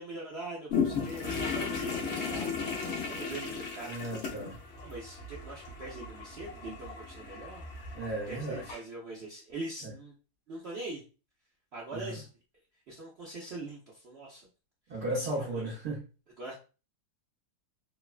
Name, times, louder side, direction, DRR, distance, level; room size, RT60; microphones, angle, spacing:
voice 1, 0.0-2.6 3.1-4.0 4.8-7.6 8.3-10.1 10.5-11.0 11.7-12.3 12.9-14.5 15.3-15.6 16.4-16.5, right 2 dB, 90° right, -5 dB, 0.5 m, -42 dB
sound 1, 0.7-8.7, left 5 dB, 75° left, 0.6 m, -36 dB
voice 2, 3.9-4.6 7.9-8.8 9.8-9.9 11.9-12.2 14.9-16.0, right 1 dB, 55° right, -5 dB, 0.7 m, -35 dB
3.0 x 2.1 x 2.4 m, 0.34 s
omnidirectional pair, 2.0 m